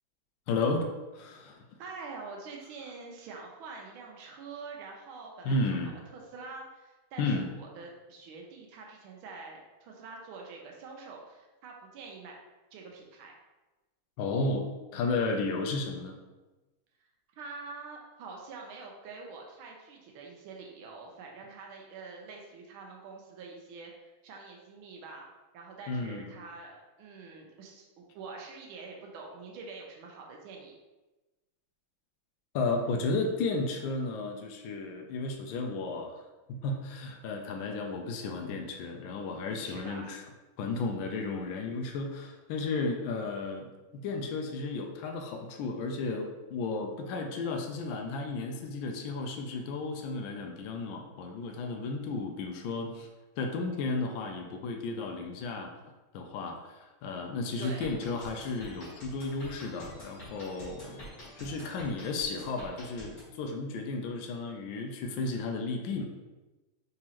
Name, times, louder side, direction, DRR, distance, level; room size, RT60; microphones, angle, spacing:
voice 1, 0.5-0.9 1.1-1.6 5.4-6.0 7.2-7.5 14.2-14.7 14.9-16.2 25.9-26.3 32.5-36.2 36.5-40.2 40.6-53.1 53.4-55.7 56.1-61.1 61.4-66.0, left 3 dB, 80° left, 3 dB, 1.3 m, -33 dB
voice 2, 1.8-12.3 12.7-13.3 17.4-25.2 25.5-30.7 39.6-40.1 42.8-43.0 57.6-57.9, right 4 dB, 90° right, 0 dB, 1.5 m, -46 dB
sound 1, 57.6-63.2, equal, 40° left, 1.9 m, -47 dB
4.1 x 3.7 x 2.9 m, 1.1 s
omnidirectional pair, 2.2 m